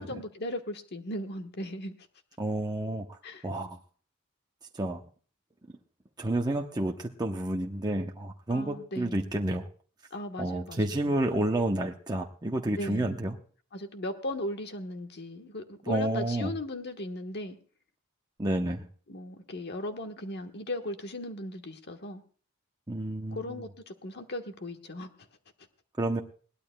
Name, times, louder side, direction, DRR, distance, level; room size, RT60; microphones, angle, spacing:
voice 1, 0.0-1.9 3.2-3.5 8.5-9.3 10.1-11.1 12.7-13.1 13.7-17.6 19.1-22.2 23.3-25.1, left 1 dB, 50° left, 6 dB, 1.3 m, -37 dB
voice 2, 2.4-3.2 3.4-3.8 4.7-5.0 6.2-9.7 10.4-13.4 15.8-16.5 18.4-18.9 22.9-23.5 26.0-26.2, right 1 dB, 20° right, 1 dB, 0.8 m, -30 dB
21.0 x 17.5 x 2.2 m, 0.43 s
head